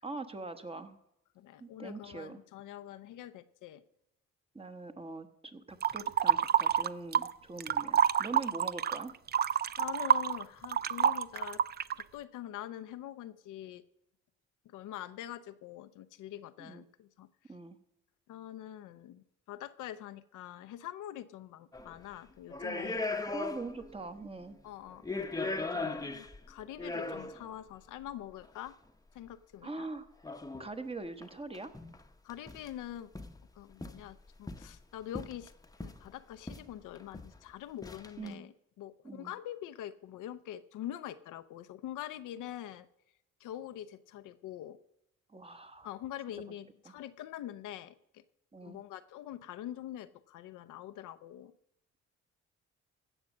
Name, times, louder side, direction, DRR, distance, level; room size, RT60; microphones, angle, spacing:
voice 1, 0.0-1.0 1.6-2.4 4.5-9.1 16.6-16.8 17.5-17.8 23.3-24.6 29.6-30.1 30.6-31.7 38.2-38.5 39.0-39.3 45.3-45.9 46.8-46.9 48.5-48.8, right 3 dB, 20° right, 9 dB, 1.1 m, -42 dB
voice 2, 1.4-3.8 9.6-11.6 12.0-13.8 14.6-17.3 18.3-23.0 24.6-25.0 25.6-28.7 29.1-29.9 32.2-33.1 33.5-35.5 35.8-42.9 43.4-44.8 45.8-48.2 48.6-51.5, left 12 dB, 85° left, 12 dB, 0.7 m, -44 dB
sound 1, 5.8-7.3 7.6-12.0, right 8 dB, 35° right, 0.4 m, -28 dB
sound 2, 21.7-22.0 22.5-23.9 24.2-24.3 24.9-27.5 28.4-28.5 30.2-30.7 31.2-31.3 31.5-32.0 32.3-32.7 33.2-33.4 33.8-34.8 35.2-36.1 36.5-36.7 37.0-37.4 37.8-38.3, left 3 dB, 10° left, 0.8 m, -38 dB
16.0 x 6.3 x 7.4 m, 0.83 s
cardioid pair, 90°, 30 cm